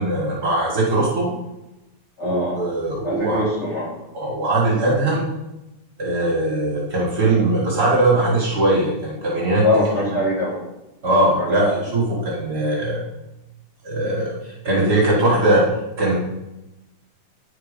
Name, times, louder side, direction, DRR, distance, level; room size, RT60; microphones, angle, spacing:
voice 1, 0.0-1.3 2.2-3.4 4.1-5.3 6.0-9.8 11.0-13.0 13.8-15.7 16.0-16.2, right 2 dB, 40° right, -4 dB, 1.8 m, -20 dB
voice 2, 2.2-2.6 3.0-3.9 9.6-10.6 11.4-11.7, left 1 dB, 20° left, -7 dB, 3.5 m, -22 dB
10.0 x 4.7 x 5.1 m, 0.95 s
omnidirectional pair, 3.3 m